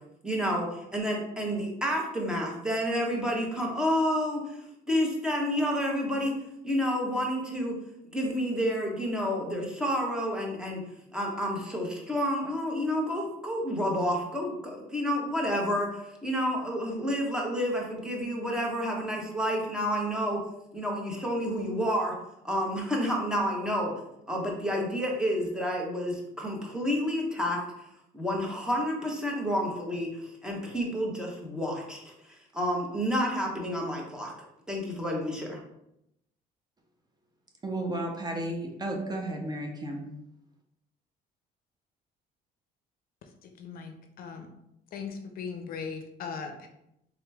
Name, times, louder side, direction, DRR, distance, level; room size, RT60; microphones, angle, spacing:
voice 1, 0.2-4.6 4.9-6.3 6.6-7.7 8.1-10.8 11.1-20.4 20.7-22.1 22.4-23.9 24.3-27.6 28.1-32.1 32.5-34.3 34.7-35.6, equal, 5° right, -2 dB, 1.0 m, -29 dB
voice 2, 37.6-40.1, right 1 dB, 25° right, 2 dB, 0.7 m, -33 dB
voice 3, 43.4-44.5 44.9-46.7, left 5 dB, 60° left, 6 dB, 0.6 m, -39 dB
3.8 x 2.9 x 3.4 m, 0.81 s
cardioid pair, 110°, 17 cm